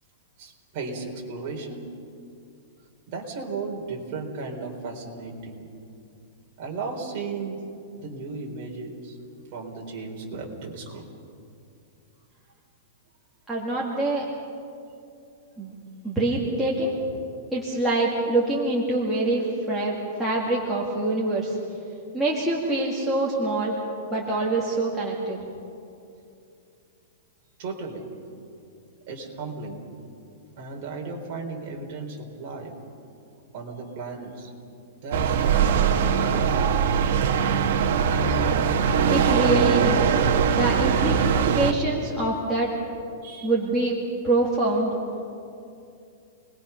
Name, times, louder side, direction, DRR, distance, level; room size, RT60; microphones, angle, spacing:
voice 1, 0.4-1.8 3.1-5.7 6.6-7.6 8.0-9.2 9.5-11.0 27.6-28.1 29.1-29.8 30.6-32.7 33.5-34.5 35.0-37.1 43.2-43.5, right 4 dB, 30° right, -1 dB, 4.0 m, -35 dB
voice 2, 13.5-14.2 15.6-15.7 16.0-16.9 17.5-21.6 22.1-23.8 24.1-25.4 39.1-40.1 40.5-41.2 41.5-42.7 43.4-44.0 44.2-44.9, right 2 dB, 5° right, -7 dB, 2.0 m, -25 dB
sound 1, 35.1-41.7, right 7 dB, 50° right, 1.3 m, -21 dB
29.5 x 21.0 x 5.8 m, 2.6 s
supercardioid pair, 180°, 0 cm